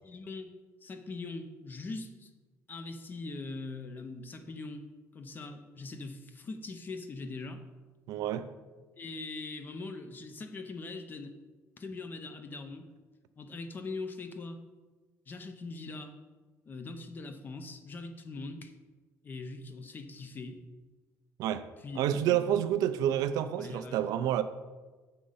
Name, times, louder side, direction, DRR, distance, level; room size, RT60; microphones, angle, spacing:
voice 1, 0.0-0.5 0.8-2.3 2.7-4.8 5.1-7.6 9.0-11.3 11.8-12.9 13.4-14.6 15.3-16.1 16.7-18.7 19.2-20.6 21.8-22.4 23.1-23.2 23.6-24.0, left 3 dB, 30° left, 0.7 m, -41 dB
voice 2, 8.1-8.5 21.4-21.7 22.0-24.4, right 10 dB, 80° right, 0.4 m, -29 dB
6.8 x 3.8 x 5.5 m
cardioid pair, 130°, 6 cm